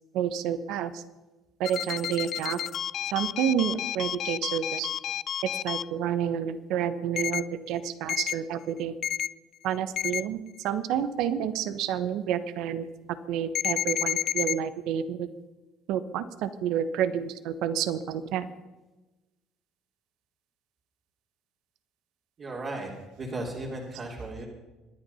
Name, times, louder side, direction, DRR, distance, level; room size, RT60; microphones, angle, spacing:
voice 1, 0.1-1.0 1.6-2.6 3.1-4.9 5.6-8.9 9.6-10.4 10.6-12.9 13.3-15.3 15.9-18.5, right 9 dB, 70° right, 13 dB, 1.1 m, -29 dB
sound 1, 1.6-5.8 7.2-7.4 8.1-8.3 9.0-9.3 10.0-10.2 13.5-14.5, left 10 dB, 55° left, 0.5 m, -30 dB
voice 2, 22.4-22.9 23.2-24.5, right 2 dB, 45° right, -4 dB, 3.5 m, -35 dB
24.5 x 10.0 x 5.7 m, 1.1 s
supercardioid pair, 75°, 0 cm